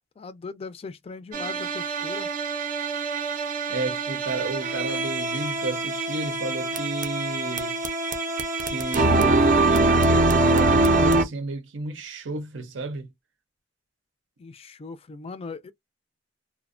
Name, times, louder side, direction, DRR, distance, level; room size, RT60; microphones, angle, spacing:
voice 1, 0.2-2.3 14.4-15.7, left 4 dB, 30° left, 0.3 m, -39 dB
sound 1, 1.3-11.2, right 2 dB, 45° right, 0.4 m, -23 dB
voice 2, 3.7-7.8 8.7-13.1, right 3 dB, 85° right, 0.6 m, -32 dB
2.5 x 2.0 x 2.4 m
head